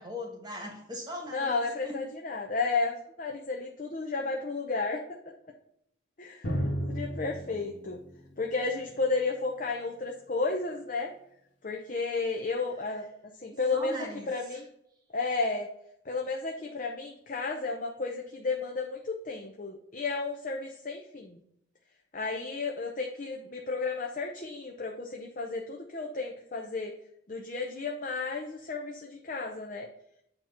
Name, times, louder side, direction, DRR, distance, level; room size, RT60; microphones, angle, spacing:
voice 1, 0.0-2.0 13.5-14.6, left 1 dB, 20° right, 1 dB, 1.3 m, -40 dB
voice 2, 1.3-5.2 6.2-6.5 6.9-8.0 8.4-11.1 11.6-13.1 13.4-14.7 15.1-15.7 16.1-21.4 22.1-27.0 27.3-29.9, left 3 dB, 40° left, 1 dB, 0.6 m, -32 dB
Drum, 6.4-10.0, equal, 65° left, 1.6 m, -35 dB
8.6 x 2.9 x 5.6 m, 0.75 s
head